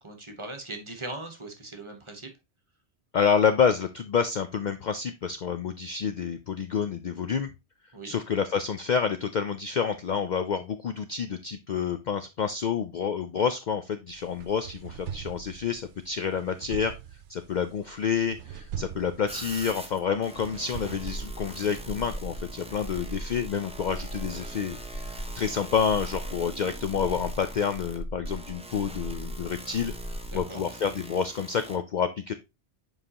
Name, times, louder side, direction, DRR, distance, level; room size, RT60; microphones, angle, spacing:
voice 1, 0.0-2.3 7.9-8.1 30.2-30.6, right 2 dB, 30° right, 4 dB, 1.1 m, -40 dB
voice 2, 3.1-7.5 8.0-16.9 17.3-29.9 30.3-32.3, left 7 dB, 55° left, 10 dB, 0.5 m, -28 dB
sound 1, 14.1-21.4, right 9 dB, 85° right, 0.9 m, -42 dB
sound 2, 19.3-31.8, right 1 dB, 5° right, 0.7 m, -44 dB
sound 3, 21.0-30.4, right 1 dB, 25° left, 1.2 m, -38 dB
7.5 x 4.8 x 2.8 m, 0.25 s
omnidirectional pair, 1.2 m